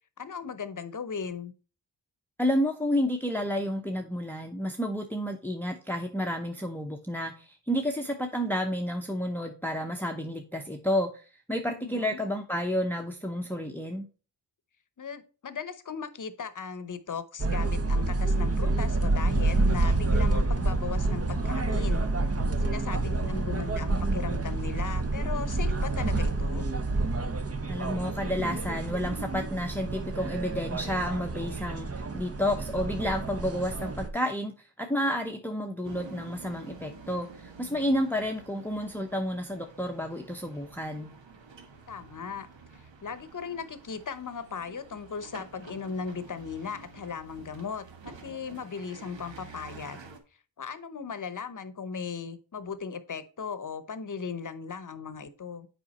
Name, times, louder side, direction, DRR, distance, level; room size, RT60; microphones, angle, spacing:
voice 1, 0.2-1.5 11.7-12.2 15.0-22.1 22.6-26.7 41.9-42.5 43.0-50.0 50.6-55.7, left 6 dB, 45° left, 0.9 m, -37 dB
voice 2, 2.4-14.1 27.7-41.1, equal, 5° left, 0.8 m, -30 dB
sound 1, 17.4-34.1, right 2 dB, 35° right, 0.8 m, -28 dB
sound 2, 35.8-50.2, right 4 dB, 90° right, 1.2 m, -49 dB
7.8 x 4.9 x 4.2 m
wide cardioid pair, 80°, 43 cm